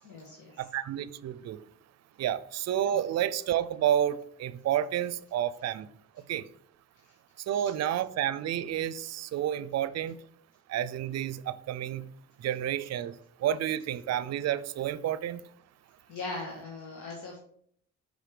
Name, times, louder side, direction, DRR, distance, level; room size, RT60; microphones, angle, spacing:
voice 1, 0.0-0.6 7.0-7.1 16.1-17.4, left 3 dB, 80° left, 1.6 m, -40 dB
voice 2, 0.6-1.6 2.2-5.9 6.3-6.5 7.5-10.2 10.7-12.1 12.4-15.4, right 11 dB, 60° right, 0.5 m, -30 dB
6.3 x 4.9 x 4.9 m
cardioid pair, 90°, 30 cm